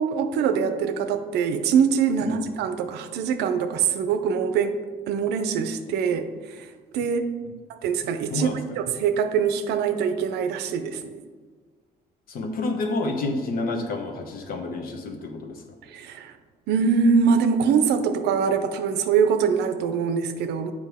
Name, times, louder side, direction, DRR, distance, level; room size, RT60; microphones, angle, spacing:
voice 1, 0.0-4.8 5.1-6.7 6.9-7.3 7.7-11.2 15.8-16.4 16.7-20.7, right 6 dB, 80° right, 8 dB, 0.6 m, -23 dB
voice 2, 12.3-15.6, left 2 dB, 60° left, 5 dB, 1.0 m, -29 dB
7.5 x 4.8 x 3.5 m, 1.5 s
cardioid pair, 110°, 17 cm